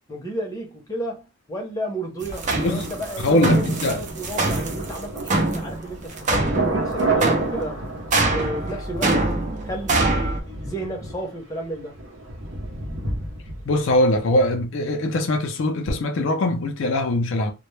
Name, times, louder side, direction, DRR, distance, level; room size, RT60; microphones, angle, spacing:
voice 1, 0.1-7.8 8.2-9.4 9.6-11.9, right 1 dB, 20° left, 0.7 m, -32 dB
sound 1, 2.2-10.4, right 2 dB, 40° right, 0.4 m, -24 dB
Thunder, 2.4-14.3 14.6-14.7, right 3 dB, 80° right, 0.7 m, -31 dB
voice 2, 3.2-4.0 13.7-17.5, left 1 dB, 70° left, 0.4 m, -22 dB
2.1 x 2.0 x 3.0 m
head